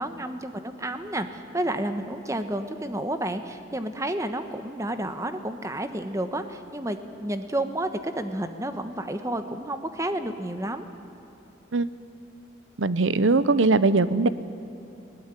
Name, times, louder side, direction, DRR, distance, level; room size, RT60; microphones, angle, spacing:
voice 1, 0.0-10.9, right 1 dB, 15° right, 9 dB, 1.1 m, -30 dB
voice 2, 12.8-14.3, right 3 dB, 75° right, 15 dB, 0.8 m, -20 dB
19.5 x 18.5 x 9.8 m, 3.0 s
head